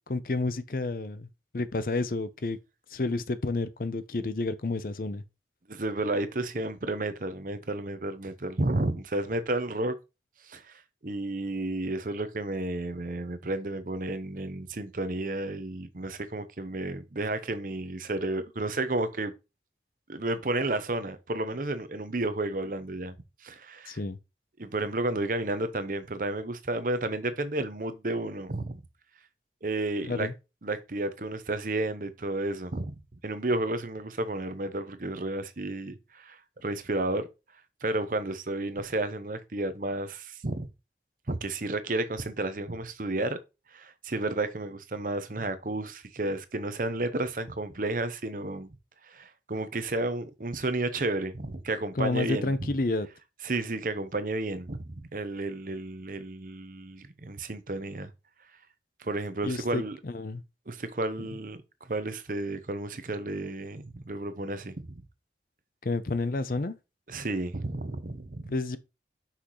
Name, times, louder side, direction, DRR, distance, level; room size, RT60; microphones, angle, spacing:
voice 1, 0.1-1.3 1.5-2.6 2.9-5.2 23.9-24.2 30.0-30.3 52.0-53.1 59.4-60.4 65.8-66.8 68.5-68.8, left 2 dB, 50° left, 0.6 m, -30 dB
voice 2, 5.7-10.0 10.4-19.3 20.1-23.2 23.4-24.0 24.6-28.8 29.6-30.3 30.6-37.3 37.8-40.7 41.3-43.4 43.7-48.7 49.1-52.7 53.4-58.1 59.0-60.0 60.7-61.6 61.9-65.0 67.1-68.5, right 2 dB, 50° right, 0.8 m, -32 dB
6.2 x 5.8 x 3.1 m
head